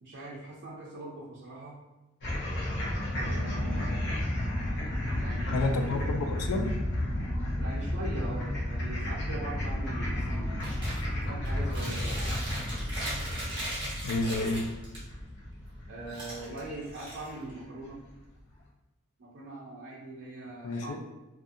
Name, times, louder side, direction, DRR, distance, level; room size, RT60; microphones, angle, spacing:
voice 1, 0.0-1.8 3.1-4.0 5.2-6.1 7.6-10.8 11.3-12.2 15.9-18.0 19.2-21.0, right 2 dB, 55° right, -6 dB, 0.5 m, -41 dB
sound 1, 2.2-17.6, left 1 dB, 50° left, 0.7 m, -32 dB
voice 2, 5.5-6.7 14.0-14.7 20.6-21.0, left 2 dB, 85° left, 4 dB, 0.4 m, -30 dB
Chewing mastication, 10.6-11.0 11.4-15.0 16.1-17.6, right 1 dB, 20° right, 0.9 m, -38 dB
2.5 x 2.4 x 2.6 m, 1.0 s
head